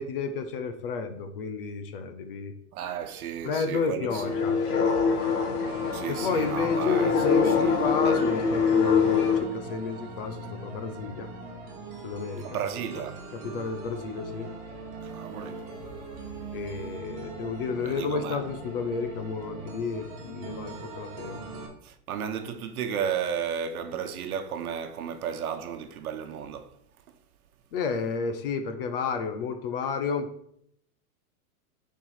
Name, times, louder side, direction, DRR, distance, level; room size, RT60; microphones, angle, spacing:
voice 1, 0.0-2.5 3.4-4.6 6.1-11.3 12.0-12.6 12.9-13.0 13.3-14.5 16.5-21.4 27.7-30.3, left 5 dB, 35° left, 0.8 m, -31 dB
voice 2, 2.7-4.1 5.9-8.2 12.4-13.2 15.0-15.6 17.8-18.4 21.8-26.7, right 8 dB, 70° right, 1.1 m, -34 dB
sound 1, 4.1-9.4, left 5 dB, 75° left, 2.1 m, -24 dB
sound 2, 5.7-21.7, right 2 dB, 25° right, 1.3 m, -41 dB
7.3 x 4.7 x 5.8 m
supercardioid pair, 175°, 45 cm